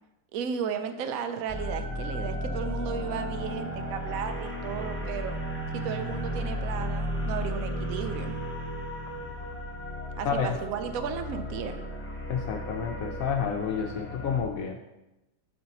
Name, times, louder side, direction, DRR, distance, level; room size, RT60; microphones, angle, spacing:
voice 1, 0.3-5.4 5.7-8.4 10.2-11.8, right 7 dB, 70° right, 8 dB, 1.0 m, -34 dB
sound 1, 1.5-14.4, equal, 15° left, 0.5 m, -34 dB
voice 2, 10.3-10.6 12.3-14.8, left 6 dB, 70° left, 3 dB, 1.0 m, -29 dB
7.7 x 7.7 x 2.9 m, 0.98 s
omnidirectional pair, 1.6 m